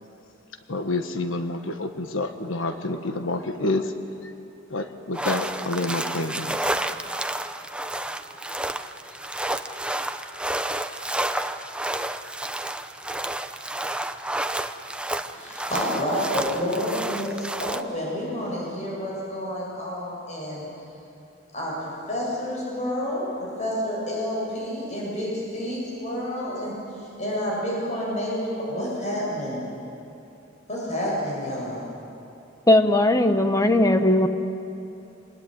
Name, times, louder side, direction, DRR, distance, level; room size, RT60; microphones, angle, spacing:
voice 1, 0.7-3.9 4.2-4.3 4.7-6.7, left 2 dB, 75° left, 7 dB, 1.3 m, -28 dB
sound 1, 5.1-17.8, right 1 dB, 5° right, 0.7 m, -30 dB
voice 2, 15.3-20.7 21.5-29.6 30.7-31.8, equal, 35° left, -4 dB, 7.5 m, -29 dB
voice 3, 32.7-34.3, left 1 dB, 15° left, 7 dB, 1.2 m, -18 dB
26.5 x 20.5 x 9.2 m, 2.8 s
head